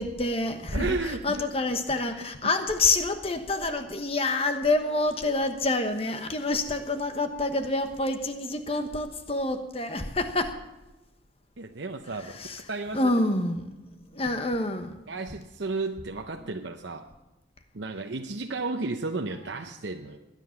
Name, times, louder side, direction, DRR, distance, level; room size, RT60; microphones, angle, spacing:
voice 1, 0.0-10.6 12.1-15.0 16.4-16.5, left 2 dB, 30° left, 7 dB, 1.2 m, -28 dB
voice 2, 0.7-1.4 11.6-12.3 12.7-13.0 15.1-17.0 17.7-20.2, right 3 dB, 70° right, 4 dB, 0.8 m, -33 dB
20.0 x 10.0 x 5.9 m, 1.0 s
head